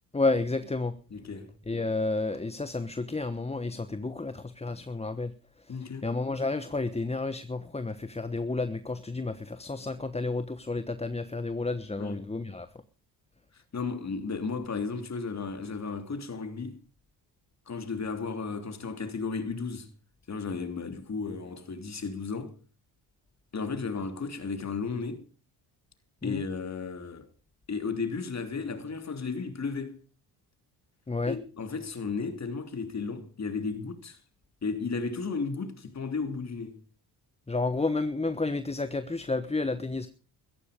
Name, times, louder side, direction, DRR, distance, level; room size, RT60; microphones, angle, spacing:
voice 1, 0.1-1.0 1.7-5.3 5.7-5.8 6.0-12.7 26.2-26.4 31.1-31.4 37.5-40.1, left 3 dB, 15° left, 1.1 m, -31 dB
voice 2, 1.1-1.5 5.7-6.1 12.0-12.3 13.5-16.8 17.7-19.9 20.3-22.5 23.5-25.2 26.2-27.3 27.7-30.0 31.3-34.2 34.6-36.8, left 4 dB, 40° left, 3.1 m, -34 dB
15.0 x 14.5 x 5.2 m
cardioid pair, 85°, 42 cm